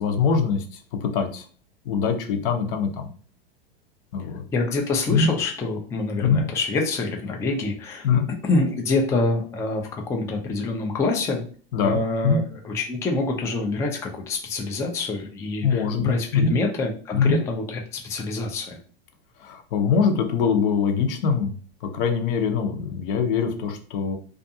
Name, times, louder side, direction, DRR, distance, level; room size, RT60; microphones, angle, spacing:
voice 1, 0.0-1.5 1.8-3.1 4.1-4.4 5.1-5.3 6.2-6.4 8.0-8.3 11.7-12.0 12.2-12.4 15.6-16.5 17.1-17.4 19.4-24.1, left 6 dB, 60° left, 5 dB, 0.7 m, -23 dB
voice 2, 4.5-8.1 8.4-11.5 11.8-18.8, left 3 dB, 10° left, 1 dB, 0.3 m, -26 dB
2.5 x 2.3 x 2.7 m, 0.42 s
hypercardioid pair, 110°, 30 cm